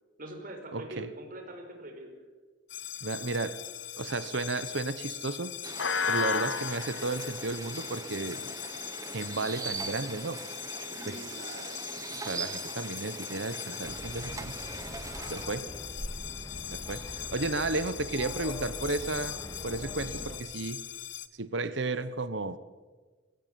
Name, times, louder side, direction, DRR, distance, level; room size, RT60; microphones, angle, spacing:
voice 1, 0.2-2.1 10.7-11.8 15.6-15.8, right 1 dB, 45° right, 4.9 m, -44 dB
voice 2, 0.7-1.1 3.0-3.6 4.0-5.6 6.1-8.5 9.1-10.4 11.0-11.2 12.1-14.5 15.3-15.7 16.7-19.4 19.6-20.8 21.4-22.6, right 3 dB, 65° right, 1.1 m, -33 dB
sound 1, 2.7-21.3, left 8 dB, 70° left, 1.0 m, -38 dB
sound 2, 5.6-15.5, right 4 dB, 15° right, 1.1 m, -41 dB
sound 3, 13.8-20.4, equal, 15° left, 3.2 m, -42 dB
21.5 x 16.0 x 9.3 m
head